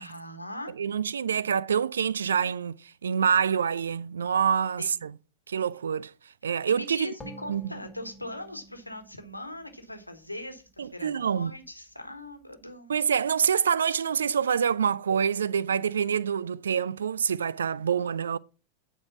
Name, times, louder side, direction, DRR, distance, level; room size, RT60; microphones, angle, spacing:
voice 1, 0.0-0.7 4.8-5.0 6.7-12.9, left 1 dB, 85° left, 1.3 m, -40 dB
voice 2, 0.8-5.1 5.5-6.1 6.4-7.1 7.5-7.6 10.8-11.5 12.9-18.4, right 7 dB, 70° right, 0.3 m, -26 dB
sound 1, 7.2-10.7, right 1 dB, 15° left, 1.8 m, -49 dB
9.4 x 4.8 x 5.8 m
figure-of-eight pair, 90°, 0 cm